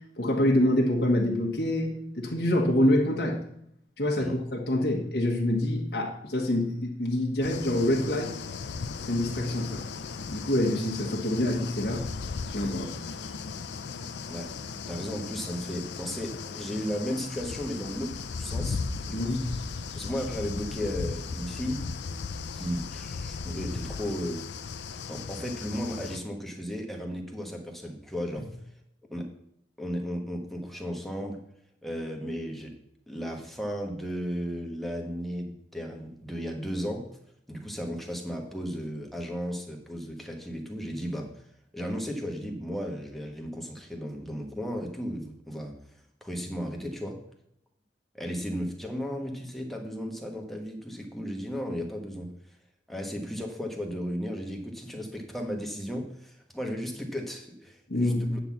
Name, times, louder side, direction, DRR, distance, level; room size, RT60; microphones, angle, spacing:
voice 1, 0.2-3.4 4.0-8.3 9.0-9.8 10.3-12.1 12.5-12.9 19.1-19.4 57.9-58.2, left 1 dB, 65° left, -1 dB, 1.3 m, -26 dB
sound 1, 7.4-26.2, left 4 dB, 80° left, 0.5 m, -37 dB
voice 2, 14.9-18.8 19.1-19.4 19.9-21.8 22.5-24.4 25.1-28.5 29.1-29.3 29.8-31.4 31.8-32.7 33.1-37.0 37.5-41.3 41.7-45.7 46.2-47.2 48.1-52.3 52.9-58.4, equal, ahead, 1 dB, 1.2 m, -35 dB
8.9 x 4.0 x 7.2 m, 0.74 s
head